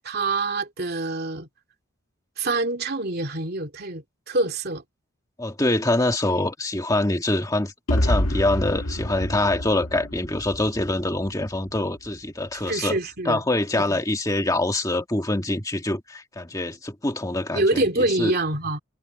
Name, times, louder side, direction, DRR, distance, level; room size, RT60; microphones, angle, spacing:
voice 1, 0.0-1.5 2.4-4.8 12.7-13.4 13.9-14.0 17.5-18.8, right 2 dB, 45° right, 2.8 m, -25 dB
voice 2, 5.4-13.0 13.2-18.3, left 1 dB, 15° left, 1.7 m, -25 dB
sound 1, 7.9-11.8, left 1 dB, 80° left, 2.2 m, -27 dB
head